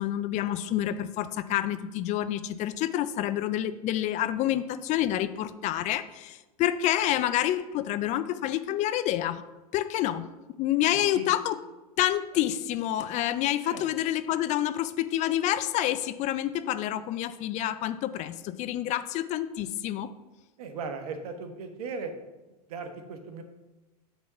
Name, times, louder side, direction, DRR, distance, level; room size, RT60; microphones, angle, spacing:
voice 1, 0.0-9.4 9.7-10.3 10.6-11.6 12.0-20.1, left 12 dB, 35° left, 12 dB, 0.5 m, -28 dB
voice 2, 20.6-22.1 22.7-23.4, right 4 dB, 65° right, 7 dB, 1.3 m, -37 dB
8.7 x 4.1 x 5.8 m, 1.1 s
hypercardioid pair, 100°, 21 cm